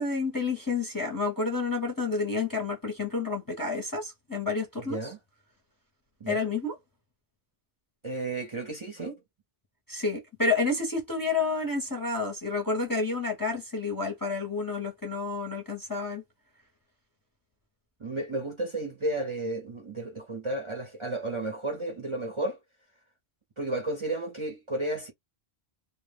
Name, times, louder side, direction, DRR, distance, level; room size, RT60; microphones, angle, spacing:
voice 1, 0.0-5.1 6.3-6.8 9.9-16.2, left 3 dB, 25° left, 0.6 m, -30 dB
voice 2, 8.0-9.2 18.0-22.6 23.6-25.1, right 2 dB, 35° right, 0.5 m, -32 dB
2.1 x 2.0 x 3.2 m
omnidirectional pair, 1.1 m